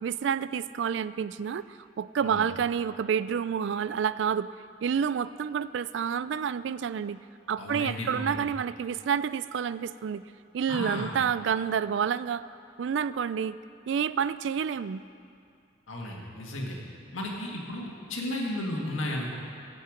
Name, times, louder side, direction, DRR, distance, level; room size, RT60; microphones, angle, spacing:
voice 1, 0.0-4.5 4.8-7.2 7.5-10.2 10.5-12.4 12.8-13.6 13.9-15.0, right 7 dB, 60° right, 16 dB, 0.3 m, -29 dB
voice 2, 7.6-8.3 10.7-11.1 15.9-16.8 17.1-19.4, left 1 dB, 85° left, -1 dB, 2.0 m, -34 dB
16.0 x 8.4 x 5.1 m, 2.4 s
head